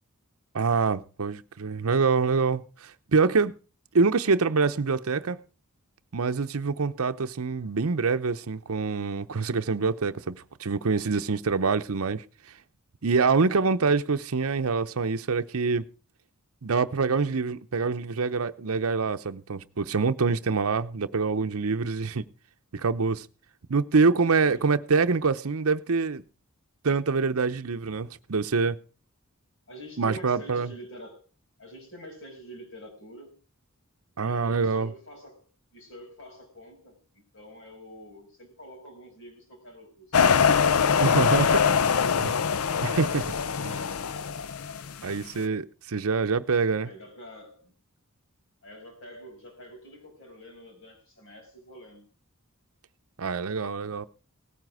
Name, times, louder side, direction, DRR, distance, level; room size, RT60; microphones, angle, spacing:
voice 1, 0.5-3.5 3.9-5.4 6.1-12.2 13.0-15.8 16.6-22.2 22.7-23.3 23.7-26.2 26.8-28.8 30.0-30.7 34.2-34.9 41.0-41.5 42.2-42.3 42.8-43.3 43.6-43.8 45.0-46.9 53.2-54.1, right 4 dB, 75° right, 0.7 m, -25 dB
voice 2, 29.7-31.2 31.6-33.4 34.1-40.2 46.8-47.7 48.6-52.1, equal, 55° left, 5.7 m, -46 dB
sound 1, 40.1-45.1, left 6 dB, 75° left, 0.6 m, -23 dB
18.0 x 9.2 x 4.8 m
head